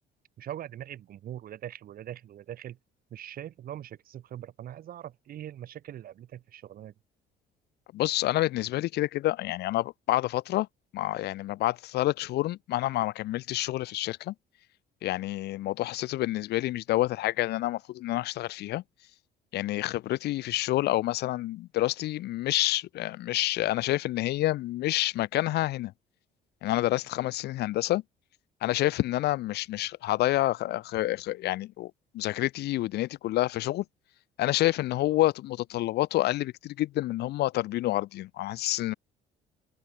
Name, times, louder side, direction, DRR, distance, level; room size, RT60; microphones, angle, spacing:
voice 1, 0.4-2.8 3.1-6.9, right 11 dB, 60° right, 3.8 m, -42 dB
voice 2, 7.9-10.7 10.9-14.3 15.0-18.8 19.5-25.9 26.6-28.0 28.6-33.8 34.4-38.9, left 16 dB, 75° left, 1.6 m, -28 dB
open air
cardioid pair, 110°, 17 cm